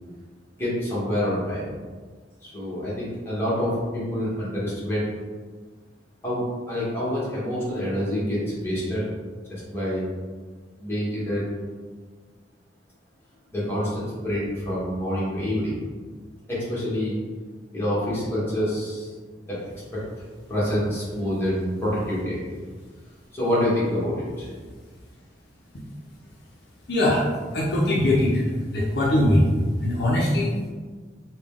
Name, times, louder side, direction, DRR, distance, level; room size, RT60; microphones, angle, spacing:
voice 1, 0.6-1.6 2.4-5.1 6.2-9.0 9.5-10.0 10.8-11.5 13.5-15.8 16.5-17.2 17.7-19.1 19.5-20.0 20.5-22.5 23.3-24.5, equal, 15° left, -9 dB, 1.2 m, -27 dB
voice 2, 26.9-30.6, left 1 dB, 65° left, -4 dB, 0.6 m, -21 dB
3.9 x 2.2 x 3.6 m, 1.5 s
head